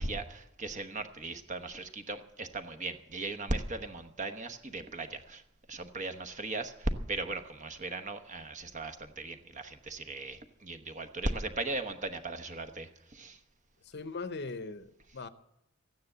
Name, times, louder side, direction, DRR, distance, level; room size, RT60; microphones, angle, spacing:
voice 1, 0.0-5.4 5.7-13.4, right 2 dB, 35° right, 1.0 m, -37 dB
voice 2, 13.8-15.3, left 3 dB, 50° left, 0.7 m, -40 dB
14.0 x 9.6 x 7.8 m
head